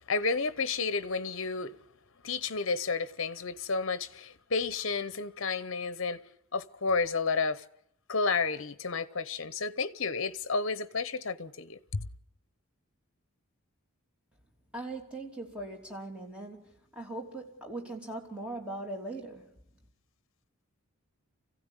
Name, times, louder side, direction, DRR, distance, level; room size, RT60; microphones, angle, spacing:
voice 1, 0.0-1.8 2.2-6.2 6.5-7.6 8.1-12.1, left 4 dB, 60° left, 0.9 m, -31 dB
voice 2, 14.7-19.6, right 2 dB, 5° right, 3.1 m, -40 dB
25.5 x 16.0 x 9.9 m
head